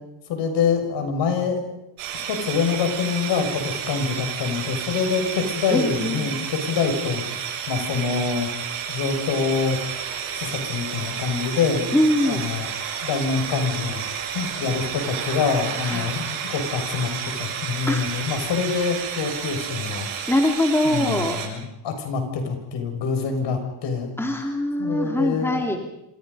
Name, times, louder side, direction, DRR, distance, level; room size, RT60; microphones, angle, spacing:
voice 1, 0.3-1.6 2.1-8.5 8.9-9.8 10.3-11.9 12.2-12.7 13.0-14.0 14.3-20.1 20.8-24.1 24.8-25.8, left 5 dB, 60° left, 5 dB, 6.4 m, -25 dB
sound 1, 2.0-21.5, right 8 dB, 80° right, 7.2 m, -31 dB
voice 2, 5.7-6.3 11.9-12.4 15.9-16.1 17.9-18.1 20.3-21.4 24.2-25.8, left 1 dB, 5° left, 2 dB, 2.7 m, -22 dB
27.5 x 26.5 x 5.5 m, 0.86 s
cardioid pair, 135°, 48 cm